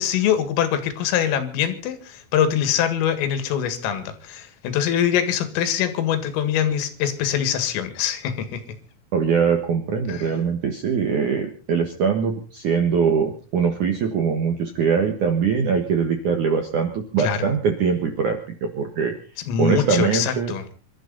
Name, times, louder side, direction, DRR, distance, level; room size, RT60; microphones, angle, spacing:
voice 1, 0.0-8.6 10.1-10.3 17.2-17.5 19.5-20.6, left 9 dB, 90° left, 10 dB, 4.5 m, -23 dB
voice 2, 9.1-19.2 19.6-20.5, right 6 dB, 70° right, 5 dB, 1.9 m, -22 dB
26.5 x 13.0 x 4.0 m, 0.37 s
omnidirectional pair, 5.7 m